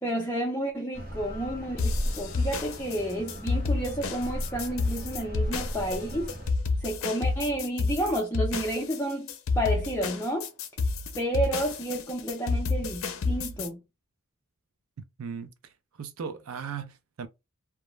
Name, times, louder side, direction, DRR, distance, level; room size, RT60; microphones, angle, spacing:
voice 1, 0.0-6.4 6.8-9.3 9.6-10.5 11.2-13.8, right 1 dB, 10° left, 0.4 m, -31 dB
sound 1, 0.9-6.5, equal, 45° right, 0.8 m, -36 dB
sound 2, 1.8-13.7, left 3 dB, 70° left, 0.5 m, -30 dB
voice 2, 15.2-15.5 16.0-17.3, right 6 dB, 85° right, 0.5 m, -37 dB
2.3 x 2.1 x 3.0 m
head